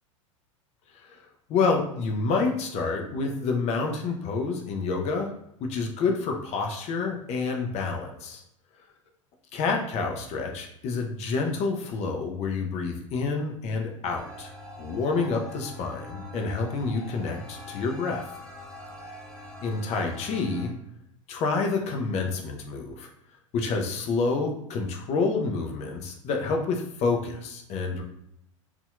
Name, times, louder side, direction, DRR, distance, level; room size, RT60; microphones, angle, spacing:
voice 1, 1.5-5.3 5.6-8.4 9.5-14.5 14.8-18.2 19.6-20.7 21.3-23.1 23.5-28.0, left 4 dB, 40° left, 2 dB, 0.8 m, -28 dB
sound 1, 14.2-20.7, left 2 dB, 5° left, 0.9 m, -43 dB
4.1 x 2.9 x 2.4 m, 0.78 s
hypercardioid pair, 85°, 17 cm